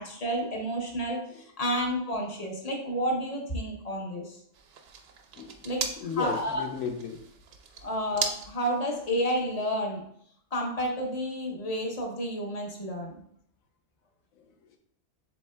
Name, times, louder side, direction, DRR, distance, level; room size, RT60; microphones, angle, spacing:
voice 1, 0.0-4.4 5.6-5.8 6.2-6.6 7.8-10.0 10.5-13.2, equal, 35° left, 1 dB, 0.7 m, -30 dB
sound 1, 4.5-9.6, right 6 dB, 65° right, 0.6 m, -39 dB
voice 2, 6.0-7.2 14.4-14.8, left 6 dB, 70° left, 4 dB, 1.1 m, -35 dB
7.1 x 3.3 x 2.2 m, 0.67 s
omnidirectional pair, 1.5 m